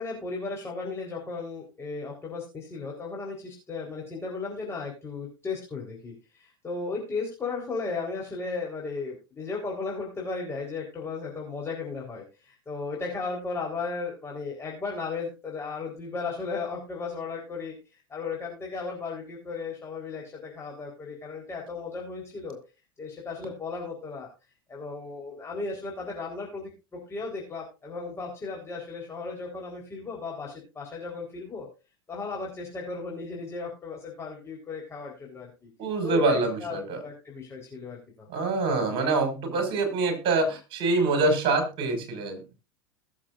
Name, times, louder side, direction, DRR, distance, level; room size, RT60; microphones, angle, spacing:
voice 1, 0.0-17.7 18.1-22.6 23.0-24.3 24.7-31.7 32.1-35.7 36.0-38.3, left 4 dB, 20° left, -2 dB, 4.0 m, -35 dB
voice 2, 35.8-37.0 38.3-42.4, right 3 dB, 45° right, 5 dB, 5.2 m, -25 dB
21.0 x 7.4 x 2.5 m, 0.30 s
hypercardioid pair, 90°, 13 cm